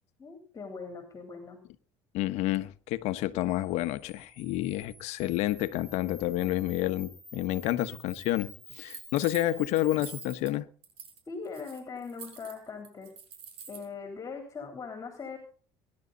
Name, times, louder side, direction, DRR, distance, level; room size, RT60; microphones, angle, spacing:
voice 1, 0.2-1.6 11.3-13.1 13.7-15.4, left 5 dB, 25° left, 3.6 m, -40 dB
voice 2, 2.1-10.7, left 15 dB, 70° left, 1.2 m, -29 dB
Camera, 3.4-10.4, left 1 dB, ahead, 5.0 m, -51 dB
sound 1, 8.9-10.5 10.8-11.2 11.4-13.9, right 6 dB, 55° right, 6.0 m, -46 dB
23.0 x 11.0 x 4.1 m
supercardioid pair, 110°, 12 cm